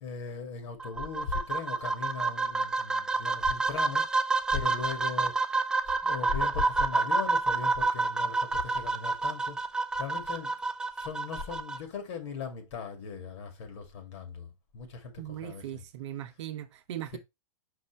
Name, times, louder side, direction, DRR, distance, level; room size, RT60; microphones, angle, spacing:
voice 1, 0.0-4.1 4.5-5.5 5.8-9.6 10.0-10.6 11.0-15.8 17.1-17.2, left 5 dB, 50° left, 2.2 m, -38 dB
sound 1, 0.8-11.8, right 3 dB, 5° right, 0.3 m, -29 dB
voice 2, 15.2-17.2, right 12 dB, 50° right, 0.8 m, -39 dB
5.6 x 5.4 x 3.1 m
figure-of-eight pair, 105°, 19 cm